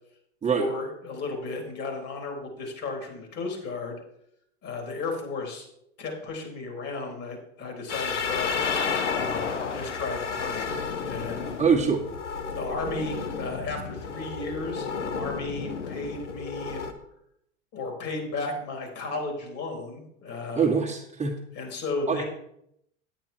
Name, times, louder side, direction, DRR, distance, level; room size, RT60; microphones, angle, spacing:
voice 1, 0.5-4.0 4.6-5.7 6.0-8.6 9.2-10.7 11.0-11.5 12.5-16.8 17.7-20.7 21.5-22.2, left 3 dB, 45° left, 1 dB, 4.0 m, -34 dB
sound 1, 7.9-16.9, left 5 dB, 90° left, 1.1 m, -31 dB
voice 2, 11.6-12.0 20.5-21.4 22.1-22.2, right 6 dB, 20° right, 0 dB, 1.5 m, -23 dB
9.5 x 8.9 x 4.6 m, 0.75 s
hypercardioid pair, 90°, 35 cm